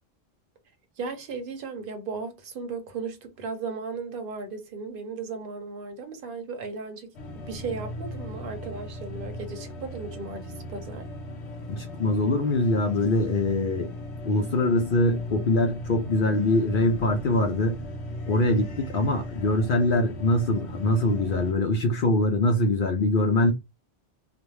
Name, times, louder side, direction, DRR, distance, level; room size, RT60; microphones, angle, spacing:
voice 1, 1.0-7.1 7.5-11.1, right 4 dB, 60° right, 0.8 m, -36 dB
sound 1, 7.1-21.5, left 1 dB, 85° left, 1.0 m, -37 dB
voice 2, 11.7-13.9 14.2-17.8 18.3-23.5, left 2 dB, 60° left, 0.7 m, -23 dB
2.5 x 2.1 x 3.1 m
omnidirectional pair, 1.1 m